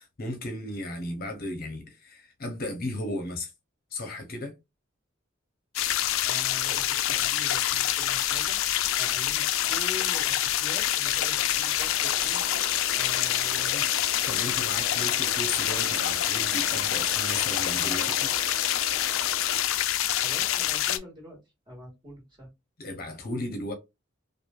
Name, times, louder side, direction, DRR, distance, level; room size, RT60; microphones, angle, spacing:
voice 1, 0.0-3.5 3.9-4.5 14.2-18.3 22.8-23.7, left 1 dB, 50° left, 0.7 m, -35 dB
sound 1, 5.8-21.0, left 12 dB, 90° left, 0.3 m, -26 dB
voice 2, 6.2-8.6 9.0-12.7 12.9-14.1 20.2-21.4 21.7-22.5, left 1 dB, 25° right, 1.7 m, -44 dB
sound 2, 11.0-19.7, right 5 dB, 65° right, 0.4 m, -42 dB
3.1 x 2.4 x 2.3 m
head